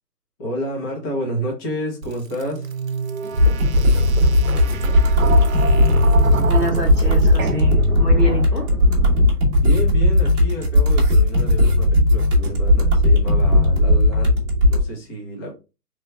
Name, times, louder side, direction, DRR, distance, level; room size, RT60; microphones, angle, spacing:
voice 1, 0.4-2.7 9.5-14.4 14.6-15.5, right 1 dB, 15° left, 0.8 m, -30 dB
sound 1, 2.0-8.8, right 4 dB, 60° right, 0.8 m, -28 dB
sound 2, 3.4-14.8, left 1 dB, 15° right, 1.0 m, -16 dB
voice 2, 6.5-8.7, right 2 dB, 85° left, 1.8 m, -27 dB
4.1 x 3.3 x 2.3 m
figure-of-eight pair, 135°, 47 cm